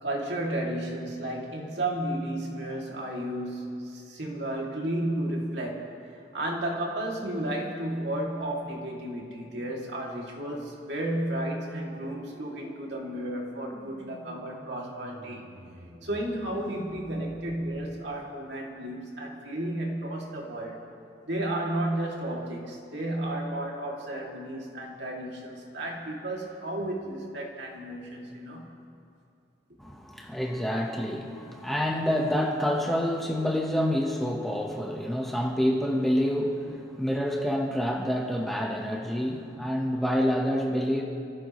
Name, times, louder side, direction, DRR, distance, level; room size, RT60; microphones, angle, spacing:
voice 1, 0.0-5.9 6.3-15.5 16.0-20.8 21.2-28.7, right 1 dB, 65° right, -2 dB, 2.7 m, -33 dB
sound 1, 10.9-18.0, equal, 85° right, 2.9 m, -50 dB
voice 2, 29.8-41.0, equal, ahead, -2 dB, 1.2 m, -27 dB
28.0 x 16.0 x 3.2 m, 2.6 s
head